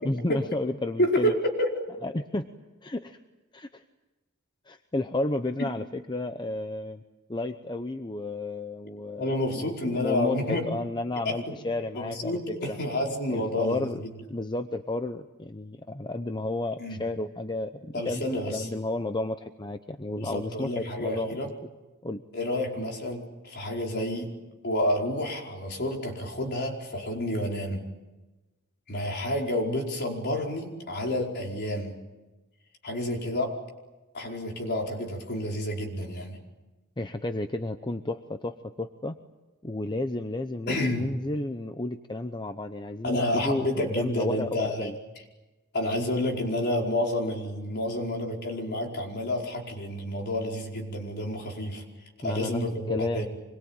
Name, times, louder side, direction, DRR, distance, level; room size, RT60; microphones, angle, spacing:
voice 1, 0.0-1.3 2.0-2.5 2.8-3.2 3.5-3.8 4.7-7.0 7.3-12.8 13.3-14.0 14.3-21.4 22.0-22.2 37.0-39.2 39.6-45.0 52.2-52.6 52.9-53.2, left 2 dB, 20° left, 8 dB, 0.8 m, -32 dB
voice 2, 1.0-1.7 9.2-10.7 11.2-11.4 11.9-14.1 16.8-17.0 17.9-18.7 20.1-21.5 22.3-24.3 24.6-27.8 28.9-31.9 32.8-33.5 34.1-36.4 40.7-41.1 43.0-44.9 45.7-51.8 52.2-53.3, left 1 dB, 50° left, 0 dB, 5.0 m, -29 dB
25.5 x 22.5 x 9.0 m, 1.1 s
head